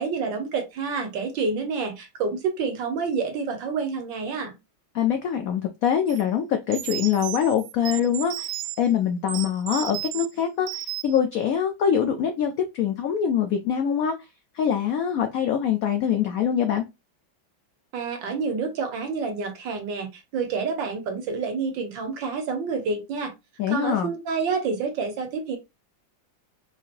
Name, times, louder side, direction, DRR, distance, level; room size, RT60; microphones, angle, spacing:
voice 1, 0.0-4.6 17.9-23.3 23.7-25.6, right 5 dB, 70° right, 1.6 m, -28 dB
voice 2, 4.9-14.1 14.5-16.8 23.6-24.1, left 8 dB, 85° left, 0.7 m, -24 dB
sound 1, 6.1-6.2 6.7-8.8 9.3-10.3 10.7-11.2, right 15 dB, 90° right, 1.4 m, -33 dB
4.7 x 2.8 x 2.5 m
omnidirectional pair, 2.1 m